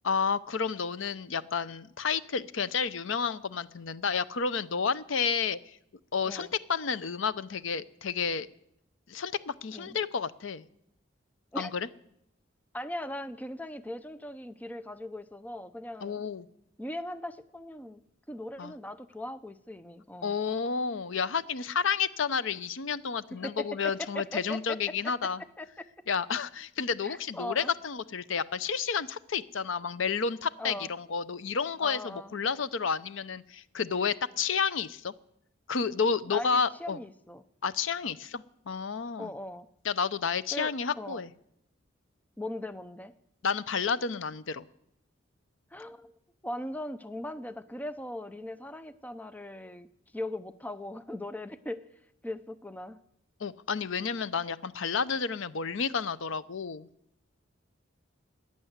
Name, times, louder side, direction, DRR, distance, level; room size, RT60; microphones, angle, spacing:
voice 1, 0.0-5.6 6.1-8.5 9.1-10.6 11.5-11.9 16.0-16.5 18.6-18.7 20.2-25.4 26.1-35.1 35.7-37.0 37.6-39.3 39.8-41.3 43.4-44.6 53.4-56.9, left 6 dB, 70° left, 16 dB, 0.6 m, -31 dB
voice 2, 12.7-16.2 16.8-18.0 18.3-20.3 23.3-25.1 25.6-25.9 27.0-27.7 30.6-30.9 31.8-32.3 36.3-37.4 39.2-39.7 40.5-41.2 42.4-43.1 45.7-46.1 46.4-49.9 50.1-51.8 52.2-53.0, left 1 dB, 10° left, 13 dB, 0.5 m, -39 dB
15.0 x 10.0 x 8.0 m, 0.76 s
head